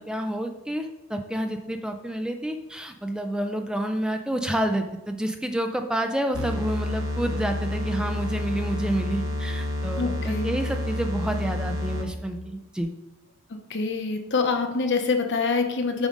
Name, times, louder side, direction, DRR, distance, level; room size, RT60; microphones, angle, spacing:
voice 1, 0.0-12.9, right 1 dB, 5° right, 5 dB, 0.4 m, -29 dB
sound 1, 6.3-12.3, left 1 dB, 65° right, 1.3 m, -29 dB
voice 2, 10.0-10.5 13.7-16.1, left 4 dB, 55° left, 5 dB, 1.0 m, -25 dB
7.2 x 4.9 x 5.2 m, 1.0 s
head